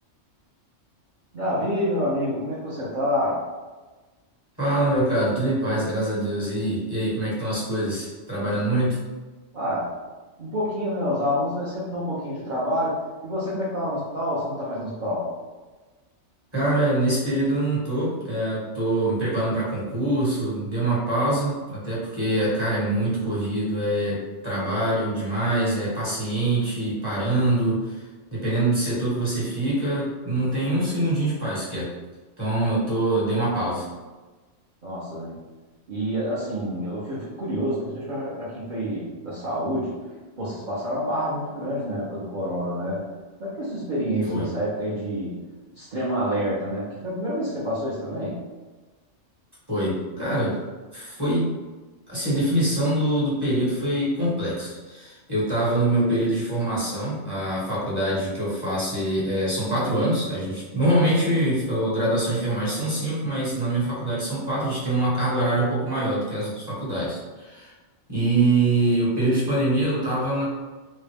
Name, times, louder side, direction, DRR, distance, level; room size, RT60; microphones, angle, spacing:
voice 1, 1.3-3.5 9.5-9.9 10.4-13.0 13.2-15.3 34.8-35.4 35.9-40.0 40.4-43.1 43.4-45.4 45.7-48.4, equal, 45° right, -10 dB, 0.9 m, -28 dB
voice 2, 4.6-9.0 16.5-28.0 28.3-31.9 32.4-33.9 44.3-44.5 49.7-50.6 50.9-51.5 52.1-67.7 68.1-70.4, right 1 dB, 20° right, -9 dB, 1.4 m, -24 dB
3.6 x 2.2 x 3.4 m, 1.3 s
omnidirectional pair, 1.3 m